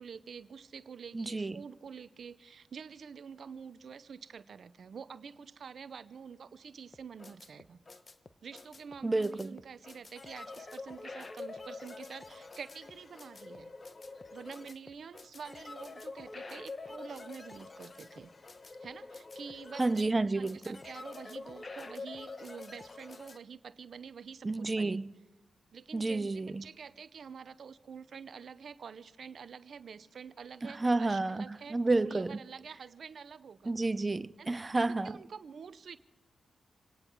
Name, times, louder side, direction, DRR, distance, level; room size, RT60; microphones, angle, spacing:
voice 1, 0.0-7.8 8.4-13.7 14.3-18.3 18.8-25.0 25.7-33.7 34.4-34.5 35.0-36.0, right 6 dB, 65° right, 0.7 m, -47 dB
voice 2, 1.1-1.6 9.0-9.6 19.8-20.8 24.4-25.1 25.9-26.7 30.6-32.4 33.7-35.2, right 2 dB, 30° right, 0.5 m, -30 dB
sound 1, 6.9-23.4, left 3 dB, 40° left, 0.9 m, -47 dB
27.5 x 9.8 x 4.6 m
supercardioid pair, 50°, 0 cm